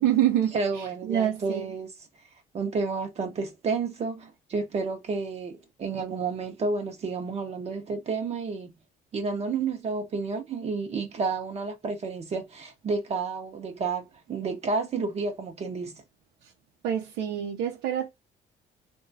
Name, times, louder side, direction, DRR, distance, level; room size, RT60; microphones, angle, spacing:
voice 1, 0.0-1.7 16.8-18.1, right 11 dB, 90° right, 0.6 m, -26 dB
voice 2, 0.5-1.9 2.5-8.7 9.1-15.9, right 4 dB, 40° right, 0.6 m, -31 dB
2.9 x 2.2 x 2.6 m
cardioid pair, 110°, 17 cm